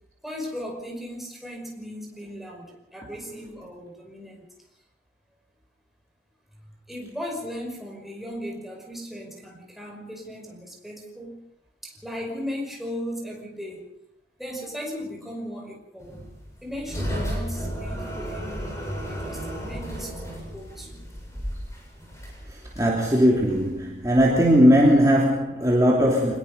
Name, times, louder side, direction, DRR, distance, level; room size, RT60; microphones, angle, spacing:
voice 1, 0.2-4.4 6.9-11.5 11.8-13.8 14.4-16.3 16.6-21.1, equal, ahead, 0 dB, 5.4 m, -37 dB
sound 1, 16.0-25.1, equal, 15° left, 7.9 m, -34 dB
voice 2, 22.8-26.4, equal, 20° right, -3 dB, 2.9 m, -19 dB
25.5 x 21.0 x 5.3 m, 0.83 s
head